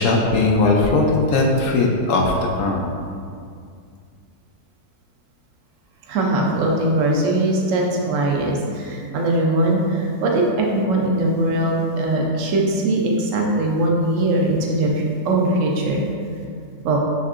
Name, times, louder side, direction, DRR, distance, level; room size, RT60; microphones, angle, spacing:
voice 1, 0.0-2.9, left 3 dB, 70° left, 0 dB, 1.0 m, -19 dB
voice 2, 6.1-16.0 16.8-17.0, right 1 dB, 65° right, -1 dB, 1.0 m, -20 dB
5.4 x 3.3 x 2.5 m, 2.3 s
omnidirectional pair, 1.6 m